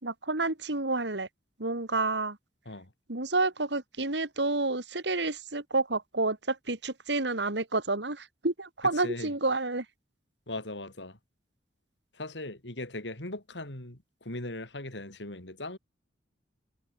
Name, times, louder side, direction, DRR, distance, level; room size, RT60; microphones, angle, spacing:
voice 1, 0.0-1.3 1.6-2.4 3.1-9.9, right 3 dB, 70° right, 2.6 m, -29 dB
voice 2, 10.5-11.2 12.1-15.8, left 2 dB, 75° left, 4.9 m, -39 dB
head